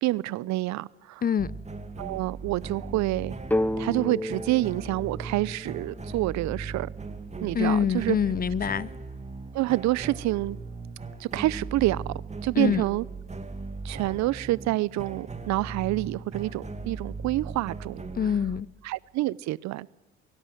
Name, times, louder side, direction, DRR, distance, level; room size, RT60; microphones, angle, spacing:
voice 1, 0.0-1.2 2.0-3.3 3.8-6.9 7.4-8.2 9.5-10.6 11.2-12.1 12.4-13.0 13.8-18.0 18.8-19.9, right 17 dB, 55° right, 0.6 m, -27 dB
voice 2, 1.2-1.5 7.5-8.9 12.5-12.8 18.1-18.7, left 7 dB, 25° left, 0.6 m, -25 dB
sound 1, 1.4-18.6, right 3 dB, 20° right, 2.2 m, -38 dB
sound 2, 3.5-7.2, left 1 dB, 5° left, 1.3 m, -32 dB
23.0 x 17.0 x 7.8 m
hypercardioid pair, 65°, 33 cm